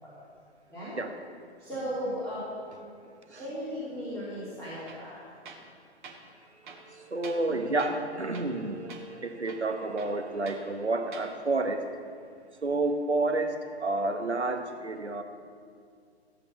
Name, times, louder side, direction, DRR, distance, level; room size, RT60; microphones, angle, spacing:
voice 1, 1.6-2.9 3.4-5.2, equal, 10° left, -11 dB, 3.2 m, -36 dB
Tools, 4.9-5.1 5.5-5.7 6.0-6.2 6.6-7.5 7.8-8.1 8.3-8.6 8.9-9.1 9.4-10.7 11.0-11.3, right 4 dB, 45° right, 1.5 m, -47 dB
voice 2, 6.9-11.8 12.6-15.2, right 2 dB, 85° right, 6 dB, 1.3 m, -30 dB
15.0 x 8.2 x 5.6 m, 2.2 s
figure-of-eight pair, 120°, 33 cm